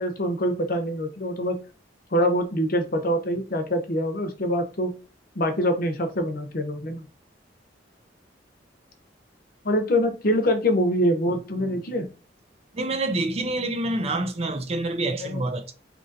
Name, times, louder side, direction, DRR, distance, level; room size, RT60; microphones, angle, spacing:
voice 1, 0.0-1.6 2.1-5.0 5.3-7.1 9.6-12.1 15.2-15.4, equal, 55° left, 0.7 m, -24 dB
voice 2, 12.7-15.7, right 2 dB, 35° right, 0.4 m, -27 dB
2.9 x 2.6 x 4.0 m
head